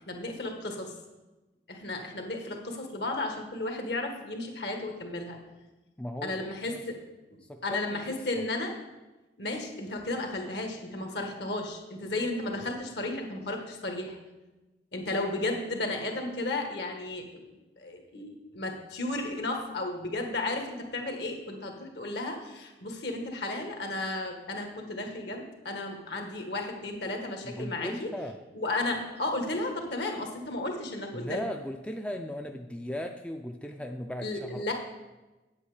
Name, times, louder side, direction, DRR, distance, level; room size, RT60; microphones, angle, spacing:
voice 1, 0.1-0.9 1.7-5.4 6.2-6.9 7.6-8.7 9.4-14.1 14.9-17.4 17.8-28.1 28.5-31.5 34.2-34.7, left 2 dB, 65° left, 3 dB, 1.5 m, -34 dB
voice 2, 6.0-6.8 7.4-8.4 27.4-28.4 31.1-34.7, equal, 5° left, 4 dB, 0.4 m, -37 dB
8.5 x 8.4 x 4.9 m, 1.1 s
head